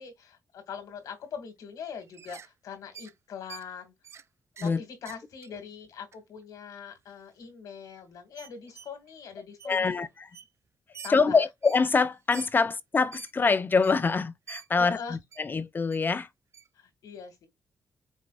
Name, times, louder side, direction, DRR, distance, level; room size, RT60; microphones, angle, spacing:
voice 1, 0.0-3.9 4.6-10.0 11.0-11.4 14.8-15.2 16.8-17.5, left 6 dB, 80° left, 2.1 m, -42 dB
sound 1, 2.0-2.5 2.9-3.1 3.5-3.7 4.0-4.3 4.6-4.7 5.1-5.6 6.1-6.2 7.0-7.1 7.4-7.5 8.3-9.1 9.6-9.7 10.0-10.1 10.3-10.5 10.9-11.2 11.6-11.8 12.3-12.5 13.1-13.3 13.8-14.0 14.5-14.7 15.3-15.4 15.9-16.0 16.5-16.7, right 7 dB, 50° right, 0.5 m, -46 dB
voice 2, 9.6-10.3 11.1-16.3, left 4 dB, 35° left, 0.5 m, -25 dB
5.4 x 3.7 x 2.4 m
cardioid pair, 85°, 6 cm